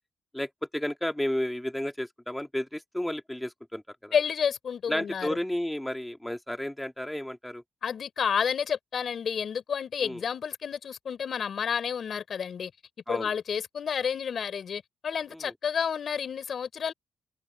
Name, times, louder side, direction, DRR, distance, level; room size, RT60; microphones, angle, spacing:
voice 1, 0.3-4.1 4.9-7.6 10.0-10.2 13.1-13.3 15.3-15.5, left 1 dB, 5° left, 2.0 m, -32 dB
voice 2, 4.1-5.4 7.8-12.7 13.1-16.9, left 7 dB, 50° left, 5.2 m, -30 dB
cardioid pair, 140°, 0 cm